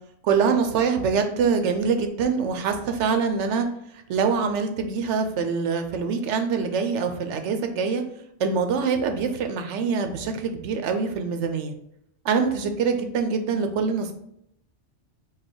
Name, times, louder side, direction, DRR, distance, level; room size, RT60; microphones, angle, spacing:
voice 1, 0.2-3.7 3.9-8.0 8.4-11.7 12.2-14.1, right 5 dB, 80° right, 7 dB, 0.9 m, -24 dB
4.8 x 2.2 x 4.4 m, 0.75 s
omnidirectional pair, 1.2 m